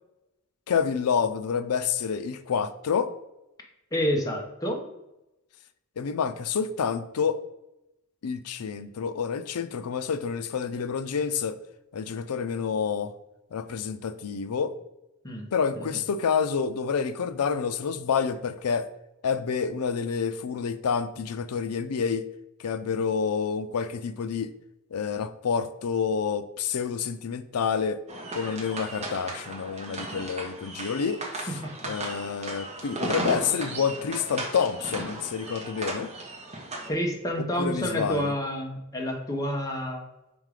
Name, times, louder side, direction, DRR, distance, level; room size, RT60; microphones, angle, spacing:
voice 1, 0.7-3.1 6.0-7.4 8.2-11.6 11.9-13.1 13.5-14.7 15.5-18.9 19.2-22.3 22.6-24.5 24.9-28.0 28.3-31.5 31.8-36.1 37.6-38.3, left 6 dB, 85° left, 12 dB, 0.5 m, -28 dB
voice 2, 3.9-4.8 15.2-15.5 15.7-15.9 31.5-31.9 36.9-40.0, equal, 15° left, 1 dB, 0.9 m, -29 dB
sound 1, 28.1-36.9, right 2 dB, 30° right, 1.2 m, -36 dB
5.3 x 3.7 x 4.8 m, 0.92 s
head